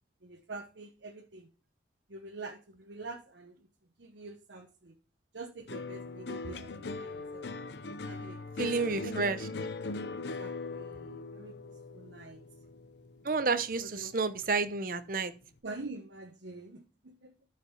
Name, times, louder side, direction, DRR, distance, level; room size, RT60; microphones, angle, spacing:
voice 1, 0.2-1.5 2.1-3.6 4.0-5.0 5.3-7.5 8.1-9.3 10.1-12.4 13.8-14.1 15.6-17.3, right 3 dB, 85° right, 2 dB, 1.1 m, -46 dB
sound 1, 5.7-14.1 14.5-15.1, left 3 dB, 70° left, 0.7 m, -40 dB
voice 2, 8.6-9.4 13.2-15.3, right 4 dB, 50° right, 12 dB, 0.8 m, -30 dB
10.0 x 5.2 x 5.7 m, 0.34 s
head